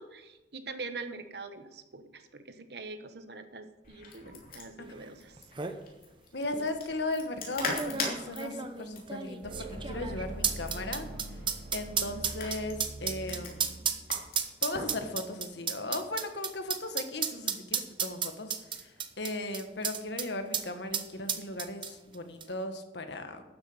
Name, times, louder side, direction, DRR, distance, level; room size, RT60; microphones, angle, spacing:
voice 1, 0.0-5.4, right 3 dB, 65° right, 9 dB, 1.1 m, -43 dB
sound 1, 3.8-15.0, left 3 dB, 50° left, 3.1 m, -41 dB
sound 2, 5.0-5.1 5.4-5.8 6.5-6.7 7.6-20.3 20.5-20.7 20.9-22.1 22.4-22.5, right 7 dB, 30° right, 0.8 m, -33 dB
voice 2, 6.3-11.1 11.7-13.8 14.6-23.4, left 2 dB, 80° left, 7 dB, 1.5 m, -37 dB
sound 3, 9.4-14.3, right 1 dB, 50° right, 2.6 m, -43 dB
12.5 x 8.1 x 7.1 m, 1.1 s
head